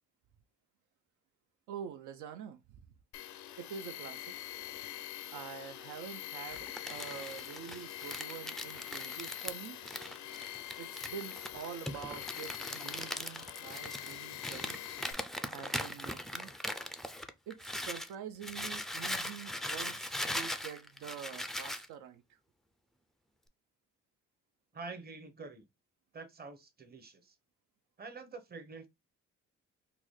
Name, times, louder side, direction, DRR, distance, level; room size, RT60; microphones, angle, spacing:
voice 1, 1.7-2.6 3.6-4.3 5.3-9.8 10.8-14.8 15.5-16.5 17.5-22.4, right 8 dB, 80° right, 0.5 m, -46 dB
Tools, 3.1-15.1, left 13 dB, 70° left, 0.5 m, -44 dB
Crumpling crinkling, 6.5-18.1 18.4-21.9, left 1 dB, ahead, 0.3 m, -40 dB
voice 2, 24.7-25.7 26.1-27.3 28.0-28.9, right 4 dB, 30° right, 0.8 m, -47 dB
3.9 x 2.2 x 3.1 m
cardioid pair, 90°, 30 cm